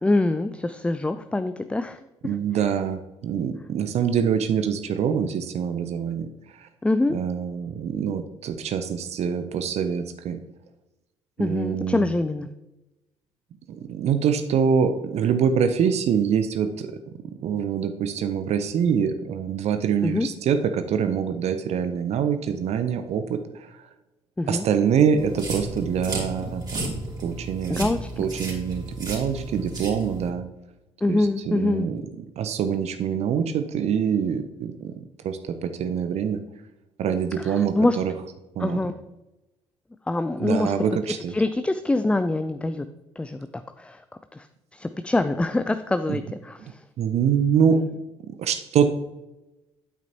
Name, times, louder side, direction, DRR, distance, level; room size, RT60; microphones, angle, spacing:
voice 1, 0.0-2.7 6.8-7.2 11.4-12.5 20.0-20.3 24.4-24.6 27.7-28.1 31.0-31.9 37.4-38.0 38.6-38.9 40.1-40.7 41.3-42.8 43.2-43.5 43.8-44.0 44.3-44.5 44.7-46.8 47.7-47.9, left 2 dB, 5° left, 10 dB, 0.4 m, -25 dB
voice 2, 2.2-6.3 6.6-6.7 7.1-10.4 11.4-12.1 13.7-17.0 17.4-23.7 24.5-27.9 28.2-30.4 31.1-32.0 32.4-34.9 35.2-36.4 37.0-38.1 38.6-38.8 40.4-41.3 46.1-46.2 47.0-47.8 48.3-48.9, right 7 dB, 45° right, 9 dB, 0.7 m, -25 dB
sound 1, 25.2-30.3, right 2 dB, 25° right, 2.9 m, -33 dB
9.0 x 8.4 x 2.9 m, 0.97 s
figure-of-eight pair, 50°, 15 cm